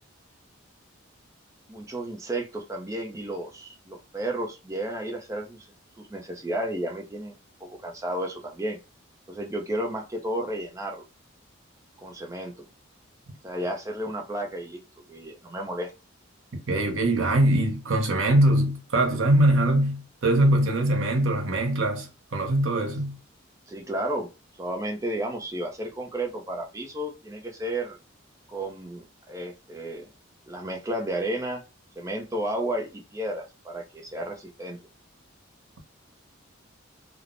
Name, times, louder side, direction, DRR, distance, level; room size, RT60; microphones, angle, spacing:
voice 1, 1.7-5.7 6.0-8.8 9.3-11.0 12.0-12.7 13.4-14.8 15.1-15.9 23.7-24.3 24.6-28.0 28.5-30.1 30.5-31.6 32.0-34.8, right 1 dB, 15° right, 0.4 m, -32 dB
voice 2, 16.7-23.2, right 1 dB, 75° right, 0.7 m, -22 dB
3.2 x 2.0 x 2.5 m
head